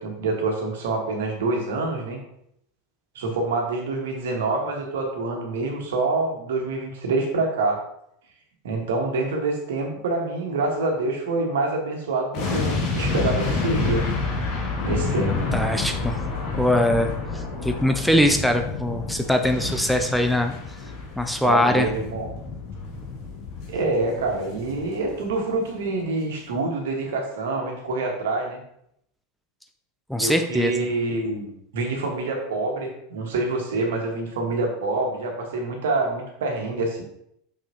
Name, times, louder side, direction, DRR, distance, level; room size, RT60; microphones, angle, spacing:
voice 1, 0.0-2.2 3.1-7.8 8.6-14.0 14.8-15.5 21.4-22.3 23.7-28.6 30.2-37.0, right 3 dB, 70° right, 1 dB, 1.7 m, -26 dB
sound 1, 12.3-25.5 25.8-25.9, left 3 dB, 50° left, 2.2 m, -29 dB
voice 2, 15.3-16.2 16.6-20.5 21.2-21.9 30.1-30.9, left 1 dB, ahead, 5 dB, 0.6 m, -22 dB
6.5 x 5.9 x 3.0 m, 0.74 s
figure-of-eight pair, 80°, 0 cm